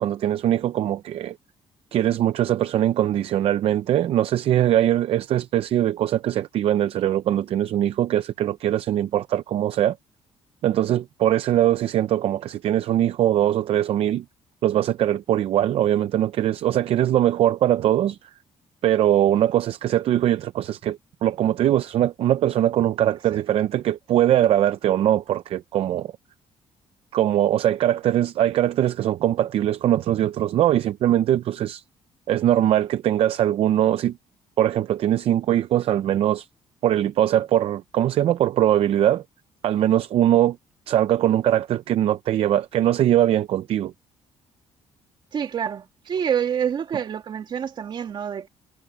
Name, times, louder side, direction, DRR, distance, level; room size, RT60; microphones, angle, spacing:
voice 1, 0.0-1.4 1.9-10.0 10.6-14.2 14.6-18.2 18.8-26.1 27.1-31.8 32.3-34.2 34.6-36.5 36.8-39.2 39.6-40.6 40.9-43.9, right 12 dB, 60° right, 0.6 m, -21 dB
voice 2, 45.3-48.5, right 8 dB, 45° right, 2.0 m, -27 dB
cardioid pair, 140°, 11 cm